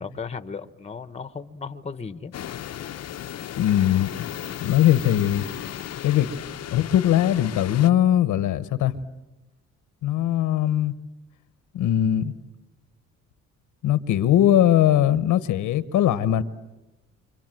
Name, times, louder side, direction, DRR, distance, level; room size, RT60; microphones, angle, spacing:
voice 1, 0.0-2.3, left 5 dB, 20° left, 1.1 m, -35 dB
sound 1, 2.3-7.9, left 10 dB, 55° left, 0.9 m, -35 dB
voice 2, 3.5-4.3 4.6-5.5 6.0-6.3 6.7-9.0 10.0-10.9 11.7-12.3 13.8-16.4, left 11 dB, 80° left, 1.2 m, -20 dB
29.0 x 26.0 x 7.7 m
cardioid pair, 90°, 30 cm